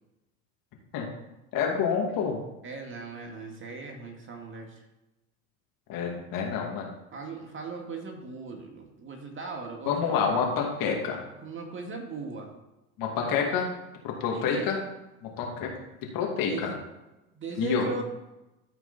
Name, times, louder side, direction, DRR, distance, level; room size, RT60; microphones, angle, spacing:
voice 1, 1.5-2.4 5.9-6.9 9.9-11.2 13.0-13.7 14.0-14.8 15.2-15.7 16.1-16.7 17.6-17.9, left 6 dB, 55° left, 0 dB, 2.5 m, -28 dB
voice 2, 2.6-4.9 7.1-10.3 11.3-12.5 13.1-13.4 14.3-14.7 16.4-16.8 17.3-18.0, right 4 dB, 30° right, 2 dB, 2.0 m, -38 dB
13.5 x 4.7 x 4.2 m, 0.98 s
hypercardioid pair, 95°, 42 cm